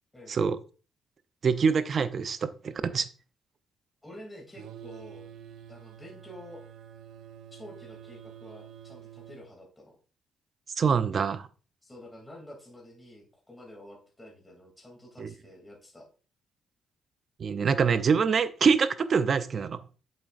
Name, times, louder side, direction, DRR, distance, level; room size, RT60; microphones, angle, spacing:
voice 1, 1.4-3.1 10.8-11.5 15.2-15.3 17.4-19.8, right 6 dB, 50° right, 12 dB, 0.7 m, -25 dB
voice 2, 4.0-5.3 5.7-6.6 7.6-10.0 11.8-16.1, left 1 dB, 15° left, -1 dB, 2.9 m, -49 dB
sound 1, 4.5-9.5, right 10 dB, 80° right, 1.0 m, -48 dB
8.0 x 7.4 x 2.6 m, 0.36 s
cardioid pair, 90°, 0 cm